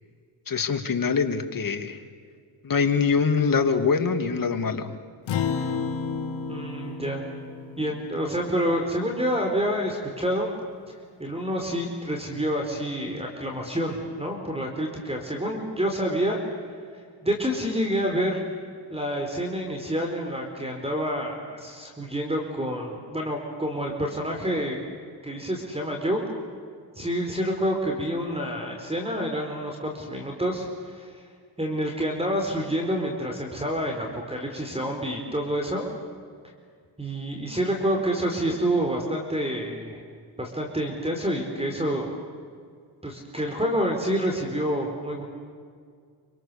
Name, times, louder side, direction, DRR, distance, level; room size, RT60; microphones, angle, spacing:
voice 1, 0.5-2.0 2.6-4.9, left 5 dB, 45° left, 6 dB, 2.6 m, -24 dB
Acoustic guitar, 5.3-10.0, left 6 dB, 80° left, 2.3 m, -32 dB
voice 2, 6.5-7.2 7.8-10.5 10.9-16.4 17.2-18.4 18.9-24.8 25.2-26.3 26.9-31.2 31.6-35.9 37.0-40.0 40.4-42.2 43.0-45.2, equal, 15° right, 2 dB, 4.4 m, -28 dB
28.0 x 26.0 x 7.0 m, 2.1 s
cardioid pair, 80°, 45 cm